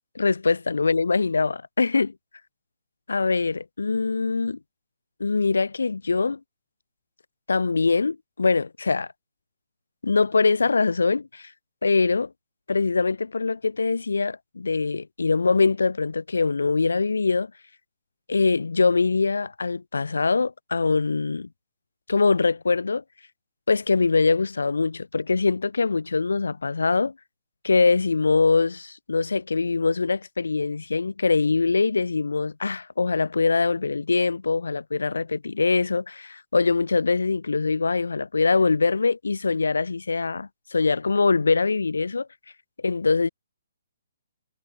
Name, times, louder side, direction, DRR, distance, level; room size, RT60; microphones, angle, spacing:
voice 1, 0.1-2.1 3.1-4.6 5.2-6.4 7.5-9.1 10.0-11.5 11.8-12.3 12.7-17.5 18.3-21.5 22.1-23.0 23.7-27.1 27.6-42.3 42.8-43.3, left 4 dB, 85° left, 0.8 m, -23 dB
hypercardioid pair, 140°, 0 cm